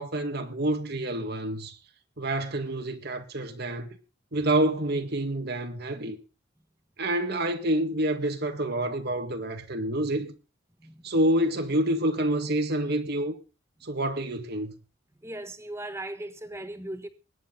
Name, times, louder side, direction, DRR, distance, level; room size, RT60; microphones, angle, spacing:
voice 1, 0.0-1.8 2.2-4.0 4.3-6.2 7.0-10.3 11.0-13.4 13.8-14.7, right 1 dB, 55° right, 1.8 m, -28 dB
voice 2, 15.2-17.1, right 1 dB, 15° right, 1.4 m, -38 dB
21.0 x 10.0 x 3.9 m
head